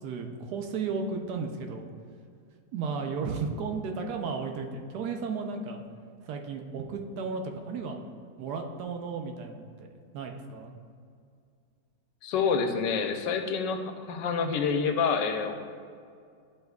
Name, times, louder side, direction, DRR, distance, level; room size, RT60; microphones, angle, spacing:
voice 1, 0.0-1.9 2.7-5.8 6.2-8.0 8.4-10.7, right 4 dB, 70° right, 4 dB, 1.2 m, -34 dB
voice 2, 12.2-15.5, left 5 dB, 80° left, 6 dB, 1.2 m, -27 dB
11.0 x 5.2 x 2.4 m, 2.2 s
omnidirectional pair, 2.0 m